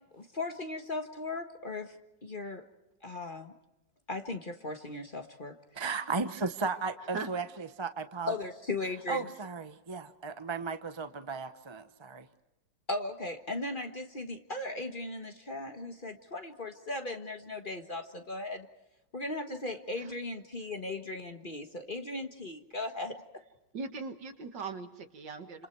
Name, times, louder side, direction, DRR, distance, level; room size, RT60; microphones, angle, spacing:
voice 1, 0.1-2.6 3.0-3.5 4.1-5.6 8.3-9.3 12.9-18.7 19.1-23.2, left 2 dB, 30° left, 5 dB, 1.5 m, -37 dB
voice 2, 5.7-8.3 9.1-12.3, right 4 dB, 20° right, 9 dB, 0.8 m, -35 dB
voice 3, 23.7-25.7, right 4 dB, 75° right, 7 dB, 2.3 m, -40 dB
29.5 x 27.5 x 4.6 m, 0.95 s
omnidirectional pair, 1.9 m